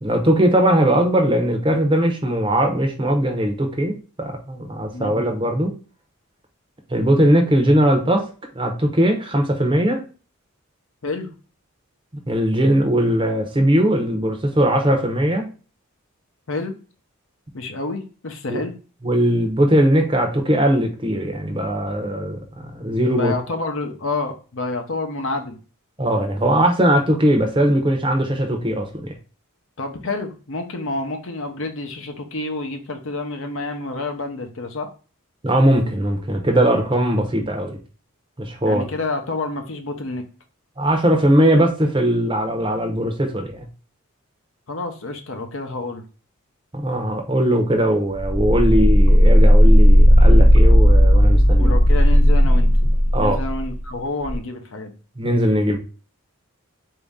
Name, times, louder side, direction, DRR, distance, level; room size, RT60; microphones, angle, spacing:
voice 1, 0.0-5.7 6.9-8.3 8.6-10.0 12.3-15.5 18.5-18.6 19.0-23.3 26.0-29.1 35.4-37.8 38.4-38.8 40.8-43.6 46.7-51.8 53.1-53.4 55.2-55.8, right 1 dB, 25° right, 3 dB, 0.7 m, -19 dB
voice 2, 17.5-18.7 23.2-25.6 29.8-34.9 38.6-40.3 44.7-46.0 51.6-52.7 53.2-54.9, left 2 dB, 60° left, 5 dB, 0.7 m, -28 dB
sound 1, 48.2-53.7 54.2-54.3, equal, 30° left, 0.9 m, -13 dB
4.1 x 2.7 x 3.5 m, 0.36 s
head